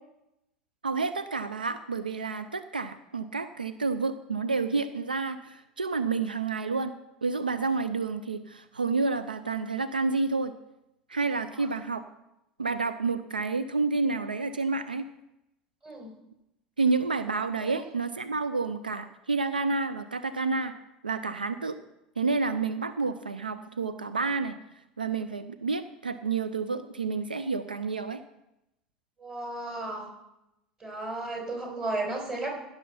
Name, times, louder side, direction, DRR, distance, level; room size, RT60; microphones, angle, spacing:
voice 1, 0.8-6.9 7.2-10.5 11.1-12.0 12.6-15.1 16.8-20.7 21.0-21.8 22.2-24.5 25.0-28.2, right 4 dB, 90° right, 12 dB, 0.5 m, -29 dB
voice 2, 15.8-16.1 17.6-17.9 29.2-30.1 30.8-32.5, right 2 dB, 20° right, 1 dB, 4.7 m, -34 dB
16.0 x 6.9 x 5.6 m, 0.89 s
figure-of-eight pair, 80°, 5 cm